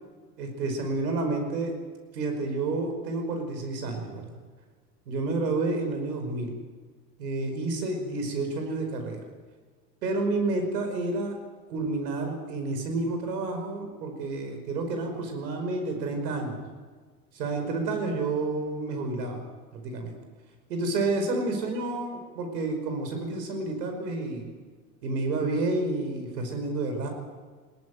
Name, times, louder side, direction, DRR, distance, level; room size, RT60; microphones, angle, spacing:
voice 1, 0.4-1.7 2.1-4.4 5.1-6.5 7.2-9.2 10.0-11.3 11.7-16.6 17.3-19.4 19.7-20.2 20.7-24.5 25.0-27.1, right 2 dB, 80° right, 4 dB, 5.2 m, -30 dB
20.5 x 18.0 x 9.4 m, 1.5 s
hypercardioid pair, 75°, 48 cm